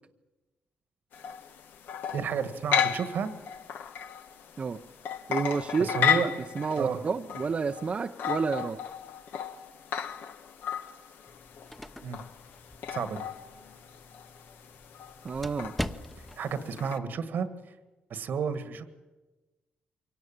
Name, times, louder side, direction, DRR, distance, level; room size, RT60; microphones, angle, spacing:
sound 1, 1.1-17.0, left 8 dB, 75° left, 1.2 m, -34 dB
voice 1, 2.1-3.3 5.8-6.3 6.8-7.0 12.0-12.2 12.9-13.2 16.4-17.5 18.1-18.9, right 6 dB, 65° right, 11 dB, 1.6 m, -31 dB
voice 2, 5.3-6.1 6.5-8.8 15.2-15.7, right 5 dB, 40° right, 6 dB, 0.7 m, -30 dB
sound 2, 11.3-16.5, left 1 dB, 5° left, 0.9 m, -42 dB
23.0 x 17.5 x 8.8 m, 1.2 s
cardioid pair, 95°, 3 cm